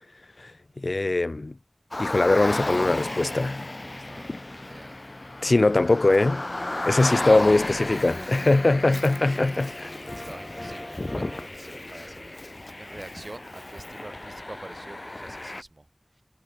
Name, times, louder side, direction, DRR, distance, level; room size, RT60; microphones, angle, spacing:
voice 1, 0.8-1.5 2.0-3.7 5.4-6.4 6.9-9.9, left 2 dB, 85° left, 0.3 m, -21 dB
Car, 1.9-15.6, left 2 dB, 55° left, 6.4 m, -34 dB
voice 2, 3.8-5.0 8.1-9.4 10.1-15.9, right 2 dB, 55° right, 7.5 m, -46 dB
sound 1, 6.2-11.5, left 1 dB, 25° left, 7.3 m, -41 dB
wide cardioid pair, 45°, 0 cm